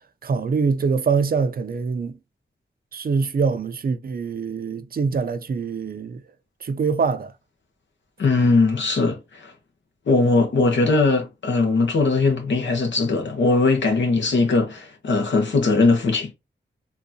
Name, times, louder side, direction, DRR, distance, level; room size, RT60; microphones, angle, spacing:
voice 1, 0.2-2.2 2.9-6.2 6.6-7.3, right 5 dB, 55° right, 0.5 m, -24 dB
voice 2, 8.2-9.5 10.1-16.3, left 3 dB, 80° left, 1.0 m, -20 dB
3.9 x 2.4 x 2.7 m
cardioid pair, 50°, 19 cm